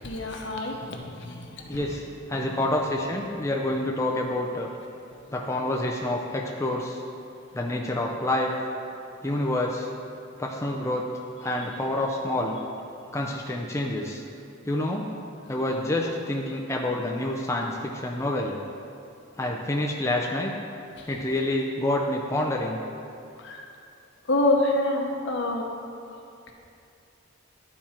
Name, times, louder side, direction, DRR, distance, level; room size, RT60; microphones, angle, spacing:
voice 1, 0.0-1.8 2.4-2.6 21.0-21.1 23.4-23.7 24.3-25.7, left 2 dB, 60° left, 1 dB, 0.9 m, -27 dB
voice 2, 1.7-4.7 5.3-7.0 7.5-8.5 9.2-9.9 10.4-11.1 11.4-12.6 13.1-14.2 14.7-15.1 15.5-18.6 19.4-20.5 21.1-22.8, left 1 dB, 15° left, -1 dB, 0.4 m, -28 dB
11.5 x 4.4 x 4.4 m, 2.6 s
head